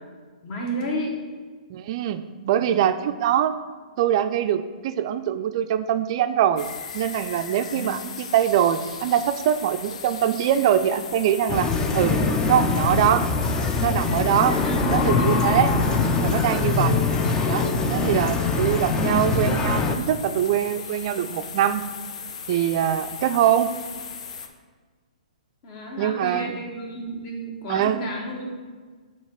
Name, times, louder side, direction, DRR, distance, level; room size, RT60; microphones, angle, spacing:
voice 1, 0.4-1.2 2.6-2.8 7.5-8.0 25.6-28.5, equal, 40° left, -1 dB, 1.7 m, -32 dB
voice 2, 1.7-3.5 4.0-6.6 6.9-11.7 11.9-12.2 12.5-13.3 13.8-14.5 14.9-15.8 16.2-17.0 17.5-21.8 22.5-23.7 26.0-26.6 27.7-28.0, right 10 dB, 45° right, 10 dB, 0.4 m, -23 dB
sound 1, 6.6-24.5, left 6 dB, 60° left, 0.7 m, -37 dB
sound 2, 11.5-20.0, left 3 dB, 15° left, 0.5 m, -23 dB
7.2 x 3.0 x 5.7 m, 1.5 s
figure-of-eight pair, 125°, 4 cm